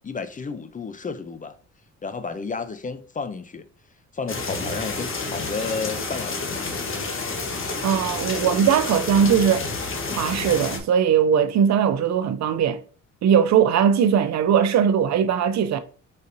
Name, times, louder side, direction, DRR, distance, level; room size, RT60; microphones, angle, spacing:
voice 1, 0.0-1.6 2.0-3.6 4.1-6.7, left 4 dB, 25° left, 0.5 m, -32 dB
sound 1, 4.3-10.8, left 3 dB, 45° left, 1.2 m, -29 dB
voice 2, 7.8-9.6 10.2-12.8 13.2-15.8, right 8 dB, 65° right, 0.6 m, -20 dB
4.7 x 4.3 x 2.6 m
cardioid pair, 90°, 30 cm